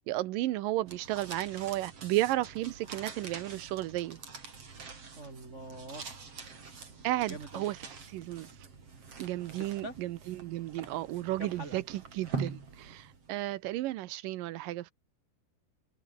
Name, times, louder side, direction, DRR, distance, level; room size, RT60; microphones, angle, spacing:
voice 1, 0.1-4.2 7.0-7.8 8.1-8.5 9.2-14.9, right 16 dB, 80° right, 2.0 m, -33 dB
sound 1, 0.8-13.4, right 5 dB, 35° right, 4.7 m, -45 dB
voice 2, 5.1-6.1 7.3-7.7 9.8-9.9 11.4-11.8, right 2 dB, 60° right, 0.7 m, -43 dB
omnidirectional pair, 5.0 m